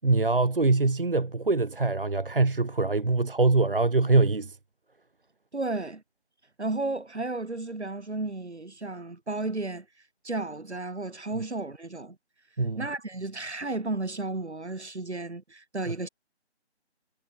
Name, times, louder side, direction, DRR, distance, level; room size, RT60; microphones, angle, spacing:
voice 1, 0.0-4.6 12.6-12.8, right 3 dB, 50° right, 1.3 m, -23 dB
voice 2, 5.5-6.0 6.6-9.8 10.2-12.2 12.8-16.1, right 2 dB, 70° right, 3.4 m, -33 dB
figure-of-eight pair, 175°, 34 cm